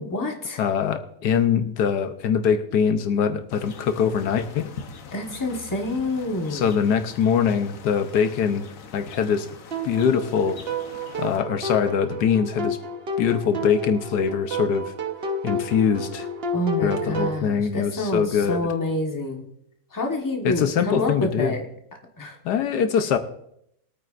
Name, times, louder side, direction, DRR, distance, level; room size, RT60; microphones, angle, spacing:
voice 1, 0.0-0.6 5.1-6.7 16.5-19.4 19.9-21.7 22.2-22.4, left 1 dB, 15° left, 1 dB, 1.2 m, -27 dB
voice 2, 0.6-4.7 6.5-8.6 8.9-9.5 9.8-10.6 11.2-12.8 13.2-14.9 15.4-16.3 16.8-18.6 20.4-21.5 22.4-23.2, left 7 dB, 85° left, 9 dB, 1.4 m, -23 dB
sound 1, 3.5-11.4, left 5 dB, 55° left, 1.3 m, -43 dB
sound 2, 9.7-17.4, equal, 45° right, 1.0 m, -31 dB
21.5 x 9.1 x 2.5 m, 0.73 s
omnidirectional pair, 1.7 m